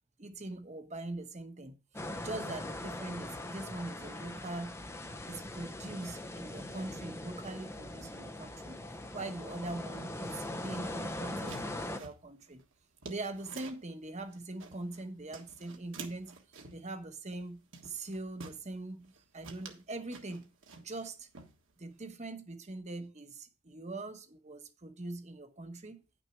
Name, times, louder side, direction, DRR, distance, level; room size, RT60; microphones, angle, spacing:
voice 1, 0.2-1.8 2.2-4.8 5.2-8.8 9.1-12.6 13.1-16.5 16.7-21.3 21.8-26.0, right 2 dB, 30° right, 1.1 m, -42 dB
sound 1, 1.9-12.0, left 1 dB, 10° left, 0.6 m, -41 dB
sound 2, 11.0-13.9 14.3-15.0 15.3-16.9 17.3-17.5 17.7-18.6 19.0-19.2 19.4-21.1 21.3-22.0, right 4 dB, 60° right, 1.5 m, -50 dB
10.5 x 6.2 x 4.5 m
head